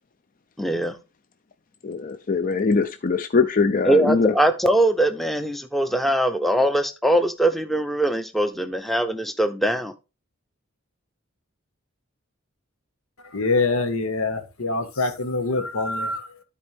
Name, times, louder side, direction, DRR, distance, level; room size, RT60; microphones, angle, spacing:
voice 1, 0.6-0.9 3.9-9.9, right 1 dB, ahead, 0.6 m, -21 dB
voice 2, 1.8-4.3, left 4 dB, 40° left, 0.5 m, -22 dB
voice 3, 13.2-16.4, left 3 dB, 85° left, 1.5 m, -25 dB
12.5 x 4.5 x 3.5 m
head